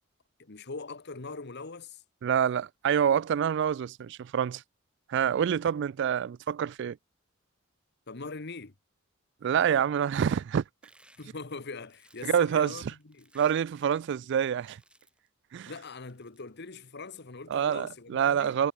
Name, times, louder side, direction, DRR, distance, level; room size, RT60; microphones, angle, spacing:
voice 1, 0.4-2.0 8.1-8.7 11.2-13.3 15.6-18.6, left 4 dB, 60° left, 1.3 m, -42 dB
voice 2, 2.2-4.6 5.1-7.0 9.4-10.6 12.2-12.7 13.3-14.8 15.5-15.7 17.5-18.7, right 8 dB, 60° right, 0.3 m, -27 dB
sound 1, 10.8-14.2 14.5-15.3 16.0-16.4, right 1 dB, 5° right, 6.3 m, -61 dB
head